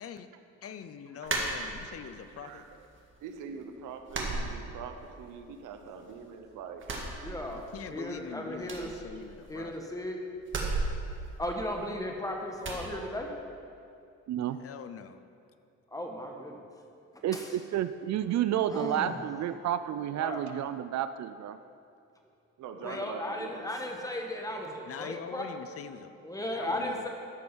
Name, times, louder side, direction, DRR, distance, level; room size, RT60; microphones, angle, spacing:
voice 1, 0.6-2.7 7.7-9.9 14.6-15.2 22.8-23.0 24.8-26.1 26.5-27.0, left 7 dB, 50° left, 11 dB, 0.6 m, -43 dB
sound 1, 1.3-2.2 2.5-3.2 3.5-3.6 4.1-5.2 5.5-6.3 6.7-7.9 8.2-8.3 8.6-9.8 10.4-12.1 12.6-12.9, right 3 dB, 40° right, 1.9 m, -35 dB
voice 2, 2.4-2.8 3.2-6.9 22.6-23.7, right 6 dB, 90° right, 6 dB, 0.9 m, -43 dB
voice 3, 7.2-7.6 7.9-8.9 9.5-10.2 11.4-13.3 15.9-16.6 17.1-17.5 18.7-19.2 20.0-20.5 22.8-25.4 26.2-27.1, left 1 dB, 10° left, 1 dB, 1.5 m, -36 dB
voice 4, 14.3-14.6 17.2-21.6, right 11 dB, 65° right, 12 dB, 0.5 m, -30 dB
13.5 x 5.2 x 6.1 m, 2.5 s
cardioid pair, 90°, 30 cm